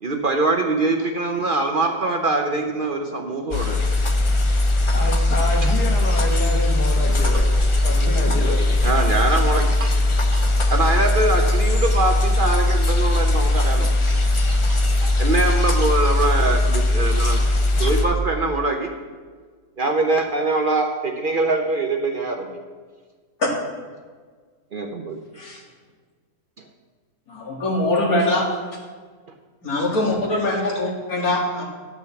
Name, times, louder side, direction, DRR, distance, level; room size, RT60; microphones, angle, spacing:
voice 1, 0.0-3.8 8.8-9.9 10.3-13.9 14.5-17.4 17.7-18.9 19.8-22.6 24.7-25.2, right 2 dB, 45° right, 3 dB, 0.7 m, -23 dB
sound 1, 3.5-18.1, left 2 dB, 40° left, 0.4 m, -19 dB
voice 2, 4.9-7.5 7.8-8.6, left 1 dB, 90° left, -1 dB, 2.3 m, -28 dB
voice 3, 27.3-28.6 29.6-31.6, left 1 dB, 65° left, -1 dB, 2.3 m, -22 dB
10.0 x 6.0 x 7.0 m, 1.5 s
omnidirectional pair, 1.7 m